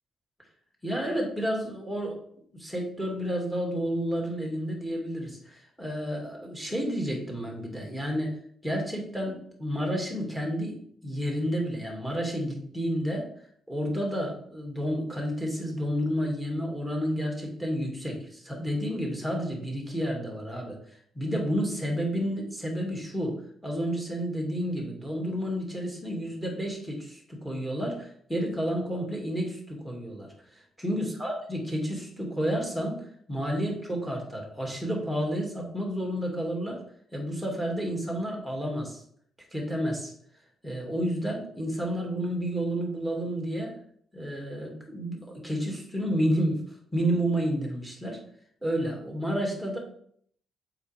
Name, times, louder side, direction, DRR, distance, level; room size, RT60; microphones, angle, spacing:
voice 1, 0.8-2.2 2.6-8.3 8.6-13.3 13.7-36.8 37.1-39.0 39.5-40.1 40.6-43.7 44.1-46.6 46.9-48.2 48.6-49.8, equal, ahead, 0 dB, 2.1 m, -30 dB
7.0 x 5.3 x 3.3 m, 0.63 s
cardioid pair, 90°, 0 cm